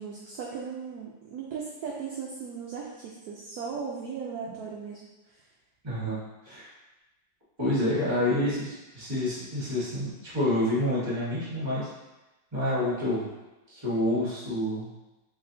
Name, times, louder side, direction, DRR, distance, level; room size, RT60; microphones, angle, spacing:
voice 1, 0.0-5.4, right 6 dB, 70° right, -2 dB, 0.9 m, -37 dB
voice 2, 5.8-6.2 6.4-6.7 7.6-11.9 12.5-13.3 13.7-14.9, left 1 dB, 15° right, -8 dB, 1.2 m, -28 dB
4.0 x 3.6 x 2.7 m, 1.1 s
omnidirectional pair, 2.0 m